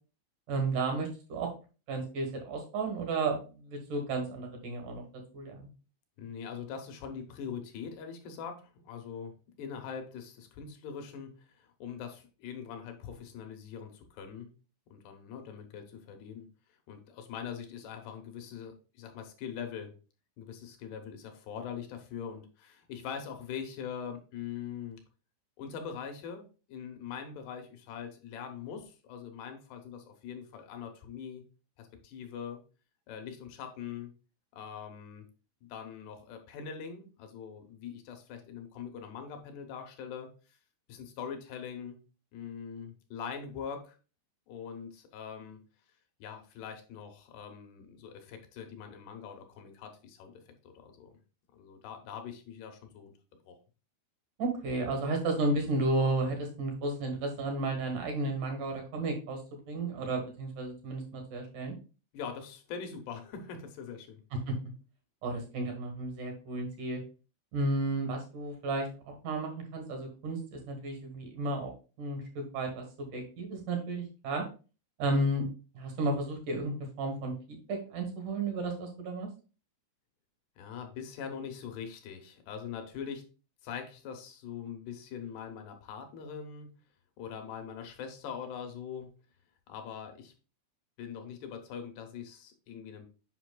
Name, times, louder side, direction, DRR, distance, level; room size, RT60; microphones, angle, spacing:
voice 1, 0.5-1.5 1.9-5.0 5.3-5.7 54.4-59.4 59.7-61.7 64.3-64.5 65.2-67.0 67.5-71.7 72.0-74.4 75.0-75.5 75.7-79.3, right 2 dB, 65° right, 3 dB, 2.1 m, -33 dB
voice 2, 6.2-9.3 9.6-14.5 14.9-16.5 16.9-19.9 20.4-25.0 25.6-31.4 31.8-32.6 33.1-34.1 34.5-35.3 35.6-40.3 40.9-42.0 42.3-44.0 44.5-45.6 46.2-51.2 51.5-53.1 53.5-53.6 62.1-64.2 80.6-83.2 83.6-86.7 87.2-89.1 89.7-90.3 91.0-93.1, left 7 dB, 75° left, 5 dB, 2.6 m, -42 dB
8.0 x 5.6 x 2.2 m, 0.34 s
omnidirectional pair, 5.4 m